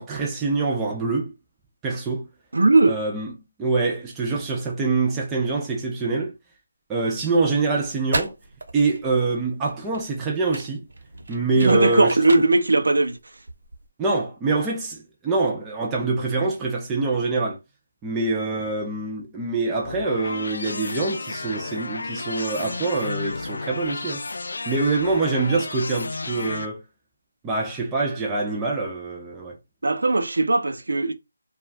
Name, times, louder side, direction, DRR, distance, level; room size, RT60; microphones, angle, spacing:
voice 1, 0.0-1.3 1.8-2.3 2.9-3.3 3.6-6.4 6.9-8.3 8.7-10.8 11.3-12.2 14.0-17.6 18.0-24.2 24.7-26.8 27.4-29.6, right 3 dB, 10° right, 0.5 m, -25 dB
voice 2, 2.5-3.0 11.6-13.2 29.8-31.1, right 2 dB, 80° right, 0.6 m, -18 dB
sound 1, 7.8-13.9, right 2 dB, 60° right, 0.9 m, -35 dB
sound 2, 19.8-26.6, left 3 dB, 65° left, 0.3 m, -32 dB
2.4 x 2.3 x 3.3 m
figure-of-eight pair, 170°, 0 cm